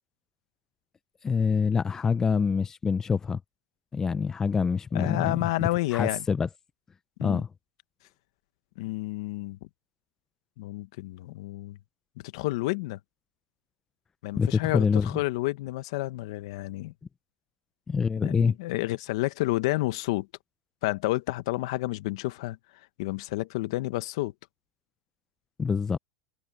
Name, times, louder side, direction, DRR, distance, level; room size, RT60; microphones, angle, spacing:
voice 1, 1.2-3.4 3.9-5.3 5.6-6.5 7.2-7.5 14.4-15.2 17.9-18.5 25.6-26.0, left 5 dB, 15° left, 0.5 m, -26 dB
voice 2, 4.9-6.3 7.2-7.4 8.8-9.6 10.6-11.8 12.2-13.0 14.2-16.9 18.2-20.3 20.8-22.6 23.0-24.3, left 19 dB, 70° left, 1.3 m, -30 dB
supercardioid pair, 130°, 3 cm